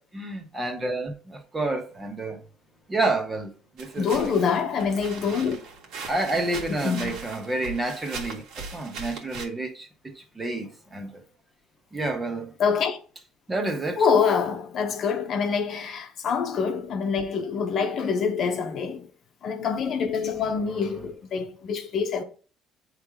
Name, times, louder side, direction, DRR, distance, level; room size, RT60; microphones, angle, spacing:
voice 1, 0.1-2.4 2.9-4.4 6.1-11.2 11.9-12.5 13.5-14.0 20.7-21.0, right 2 dB, 20° right, 1.3 m, -30 dB
sound 1, 3.8-9.5, right 4 dB, 70° right, 1.7 m, -39 dB
voice 2, 4.0-5.6 6.7-7.1 12.6-13.0 14.0-19.1 19.4-22.2, left 6 dB, 50° left, 1.0 m, -25 dB
8.0 x 3.3 x 3.8 m
cardioid pair, 115°, 0 cm